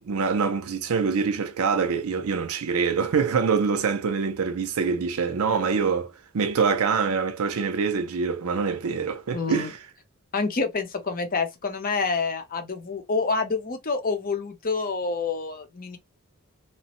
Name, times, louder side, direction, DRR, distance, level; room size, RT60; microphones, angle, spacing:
voice 1, 0.1-9.8, right 5 dB, 70° right, 0.5 m, -25 dB
voice 2, 9.3-9.7 10.3-16.0, left 4 dB, 40° left, 0.7 m, -27 dB
3.0 x 2.1 x 2.9 m
head